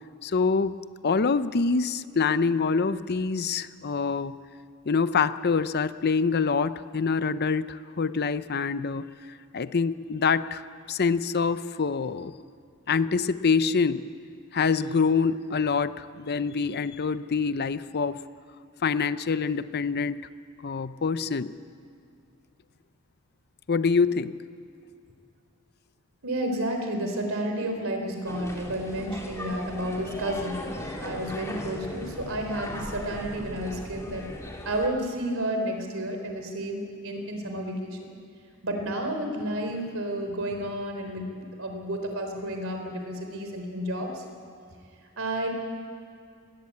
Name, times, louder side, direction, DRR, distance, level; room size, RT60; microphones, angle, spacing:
voice 1, 0.2-0.7 1.0-4.4 4.9-9.1 9.5-12.3 12.9-14.1 14.5-18.2 18.8-20.3 20.6-21.5 23.7-24.3, left 5 dB, 50° left, 13 dB, 0.6 m, -25 dB
voice 2, 26.2-34.3 34.6-38.0 38.6-44.2 45.2-45.5, right 1 dB, 65° right, 4 dB, 3.8 m, -31 dB
sound 1, 28.2-34.9, left 1 dB, 15° left, 2.7 m, -38 dB
21.0 x 19.5 x 8.6 m, 2.4 s
head